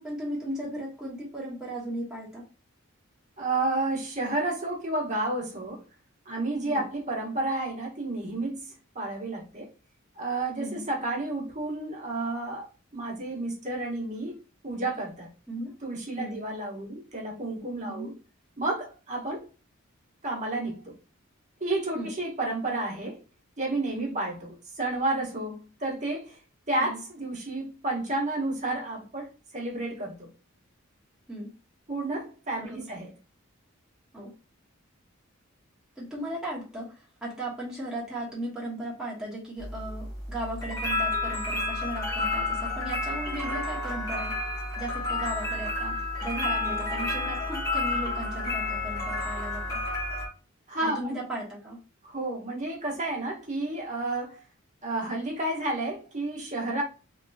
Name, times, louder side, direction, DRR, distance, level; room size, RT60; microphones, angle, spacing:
voice 1, 0.0-2.4 6.7-6.9 10.6-10.8 15.5-15.7 16.2-16.4 17.8-18.1 21.9-22.1 23.9-24.1 26.8-27.0 31.3-31.5 32.6-32.9 34.1-34.3 36.0-44.3 44.8-49.8 50.8-51.8, right 1 dB, 5° right, 1.0 m, -36 dB
voice 2, 3.4-5.8 6.2-8.6 8.9-9.7 10.1-14.4 14.6-15.3 15.8-18.2 18.6-19.4 20.2-20.8 21.6-23.2 23.6-26.4 26.7-29.3 29.5-30.3 31.9-33.1 50.7-51.1 52.0-54.4 54.8-56.8, right 2 dB, 35° right, 1.1 m, -31 dB
sound 1, 39.6-50.3, left 2 dB, 15° left, 1.1 m, -30 dB
3.0 x 2.9 x 2.7 m
head